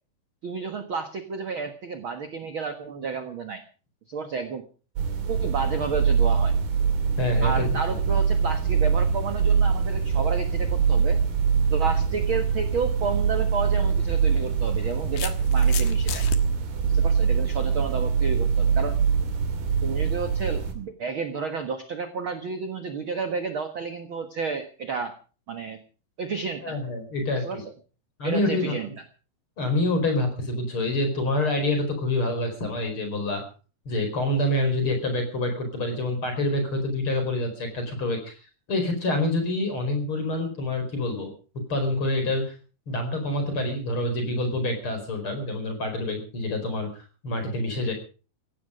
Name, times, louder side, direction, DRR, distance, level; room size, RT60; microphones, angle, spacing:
voice 1, 0.4-3.6 4.1-4.6 5.2-6.5 7.4-11.2 11.7-16.3 16.9-19.0 19.8-25.2 25.5-25.8 26.2-26.8 27.3-27.6 28.2-28.9, right 5 dB, 50° right, 8 dB, 1.6 m, -31 dB
sound 1, 5.0-20.7, right 6 dB, 85° right, 4.7 m, -23 dB
voice 2, 7.2-7.7 26.6-27.5 28.2-28.7 29.6-33.4 33.9-38.4 38.7-41.3 41.7-42.4 42.9-46.9 47.2-47.9, left 1 dB, 35° left, 5 dB, 5.4 m, -26 dB
sound 2, 13.2-13.4 14.5-16.4, left 10 dB, 75° left, 3.2 m, -35 dB
16.5 x 16.0 x 5.2 m, 0.38 s
omnidirectional pair, 4.3 m